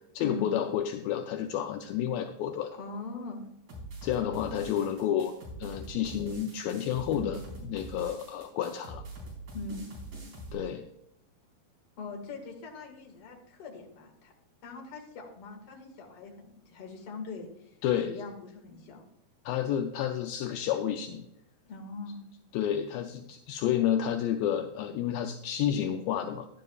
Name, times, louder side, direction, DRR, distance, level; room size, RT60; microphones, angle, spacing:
voice 1, 0.1-2.7 4.0-9.0 10.5-10.8 17.8-18.1 19.5-21.3 22.5-26.5, left 10 dB, 80° left, 5 dB, 2.3 m, -30 dB
voice 2, 2.8-3.4 7.1-7.4 9.5-9.9 12.0-14.3 14.6-17.7 18.1-19.0 21.6-22.2, left 3 dB, 45° left, 1 dB, 2.4 m, -41 dB
sound 1, 3.7-10.5, right 1 dB, 60° right, 6.0 m, -43 dB
12.0 x 11.0 x 2.3 m, 0.80 s
omnidirectional pair, 4.3 m